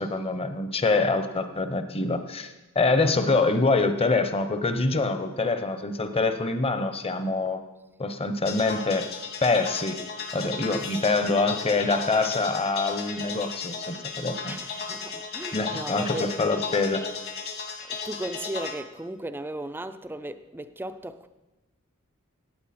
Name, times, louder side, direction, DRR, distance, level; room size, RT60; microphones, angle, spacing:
voice 1, 0.0-7.6 8.0-9.1 9.4-10.0 10.3-14.6 15.5-17.0, left 3 dB, 25° left, 0.8 m, -25 dB
sound 1, 8.4-18.7, left 5 dB, 50° left, 1.4 m, -35 dB
voice 2, 14.4-16.4 17.8-21.3, right 1 dB, 10° right, 0.4 m, -36 dB
16.0 x 8.9 x 4.3 m
head